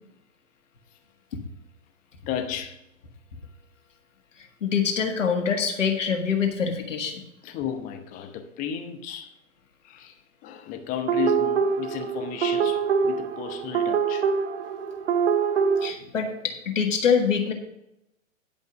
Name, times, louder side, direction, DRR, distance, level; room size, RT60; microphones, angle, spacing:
voice 1, 2.3-2.8 7.4-9.4 9.8-14.3, left 9 dB, 20° left, 6 dB, 0.9 m, -34 dB
voice 2, 4.4-7.2 15.8-17.5, left 6 dB, 70° left, 2 dB, 1.8 m, -25 dB
sound 1, 11.1-15.9, right 6 dB, 50° right, 0.9 m, -24 dB
10.5 x 5.2 x 6.5 m, 0.85 s
figure-of-eight pair, 120°, 39 cm